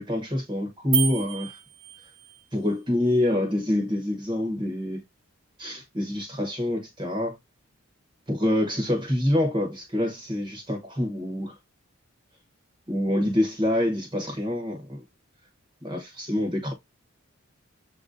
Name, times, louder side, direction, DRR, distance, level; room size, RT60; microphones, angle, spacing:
voice 1, 0.0-1.6 2.5-5.0 5.6-7.4 8.3-11.5 12.9-15.0 15.8-16.7, left 1 dB, 20° right, 0.9 m, -26 dB
sound 1, 0.9-2.5, right 10 dB, 65° right, 0.5 m, -30 dB
6.9 x 2.5 x 2.5 m
head